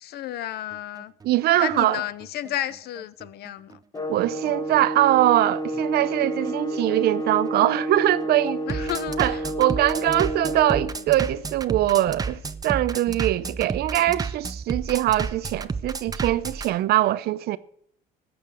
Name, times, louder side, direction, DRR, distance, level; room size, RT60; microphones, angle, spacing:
voice 1, 0.0-3.7 8.7-9.4, left 13 dB, 70° left, 0.8 m, -32 dB
Bass drum, 0.7-16.7, right 4 dB, 20° right, 0.7 m, -32 dB
voice 2, 1.2-2.0 4.1-8.6 9.2-17.6, right 14 dB, 70° right, 0.7 m, -22 dB
sound 1, 3.9-11.0, equal, 20° left, 1.3 m, -30 dB
14.5 x 6.5 x 7.7 m
cardioid pair, 110°, 17 cm